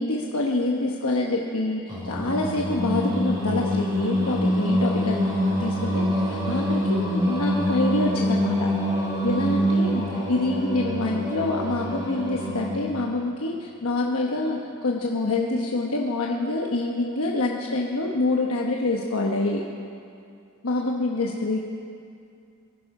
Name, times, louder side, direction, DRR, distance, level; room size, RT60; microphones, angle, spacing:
voice 1, 0.0-8.7 9.2-19.6 20.6-21.6, left 2 dB, 75° left, -1 dB, 1.1 m, -26 dB
Singing, 1.9-13.0, equal, 20° right, 5.1 m, -25 dB
22.5 x 12.0 x 4.9 m, 2.5 s
head